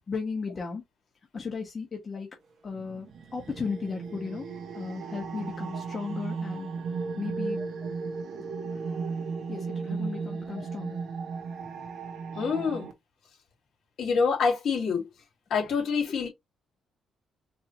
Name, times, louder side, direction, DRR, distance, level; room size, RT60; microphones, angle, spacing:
voice 1, 0.1-0.8 1.3-2.3 2.6-3.1 3.3-4.5 4.7-6.7 7.2-7.6 9.5-11.0, left 5 dB, 35° left, 1.2 m, -35 dB
sound 1, 2.7-12.9, right 5 dB, 65° right, 1.1 m, -35 dB
voice 2, 12.3-12.9 14.0-15.1 15.5-16.3, left 5 dB, 70° left, 2.5 m, -26 dB
4.8 x 2.8 x 2.8 m
cardioid pair, 90°, 0 cm